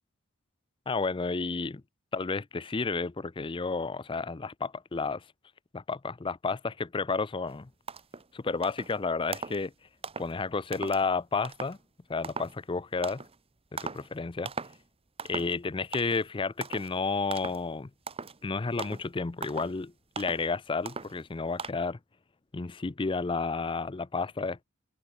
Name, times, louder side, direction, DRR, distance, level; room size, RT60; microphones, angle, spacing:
voice 1, 0.9-1.8 2.1-5.2 5.7-7.7 8.3-9.7 10.2-11.8 12.1-13.2 13.8-14.5 15.2-17.9 18.4-22.0 22.5-24.6, left 4 dB, 20° left, 0.4 m, -31 dB
sound 1, 7.5-7.6 7.9-8.3 8.6-9.0 9.3-9.7 10.0-10.3 10.7-11.0 11.4-11.8 12.2-12.6 13.0-13.3 13.8-14.1 14.4-14.8 15.2-15.6 15.9-16.3 16.6-16.9 17.3-17.6 18.1-18.4 18.8-19.1 19.4-19.8 20.2-20.5 20.8-21.2 21.6-21.7, right 5 dB, 25° right, 1.1 m, -39 dB
head